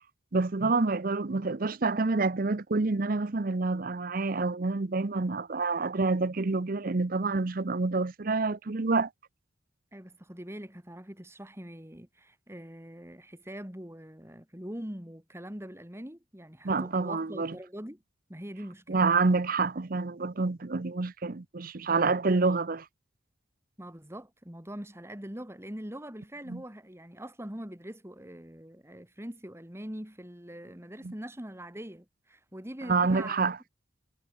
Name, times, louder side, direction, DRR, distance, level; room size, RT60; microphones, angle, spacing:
voice 1, 0.3-9.1 16.6-17.5 18.9-22.8 26.5-26.6 31.0-31.1 32.9-33.6, right 3 dB, 50° right, 0.7 m, -27 dB
voice 2, 9.9-18.0 18.3-19.0 23.8-33.5, equal, 15° right, 2.5 m, -43 dB
head